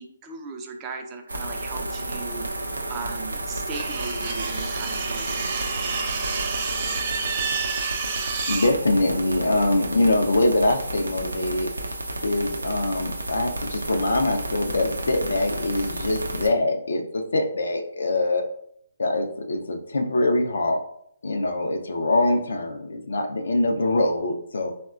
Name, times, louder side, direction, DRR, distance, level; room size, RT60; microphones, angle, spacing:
voice 1, 0.0-6.1, right 4 dB, 20° right, 3 dB, 0.4 m, -38 dB
sound 1, 1.3-16.5, right 1 dB, 90° right, 0.4 m, -32 dB
sound 2, 3.7-8.7, right 5 dB, 40° right, 0.8 m, -30 dB
voice 2, 8.5-11.7 12.2-18.4 19.0-20.8 21.2-24.7, left 2 dB, 70° left, 5 dB, 0.4 m, -23 dB
3.6 x 2.1 x 2.3 m, 0.70 s
figure-of-eight pair, 145°, 0 cm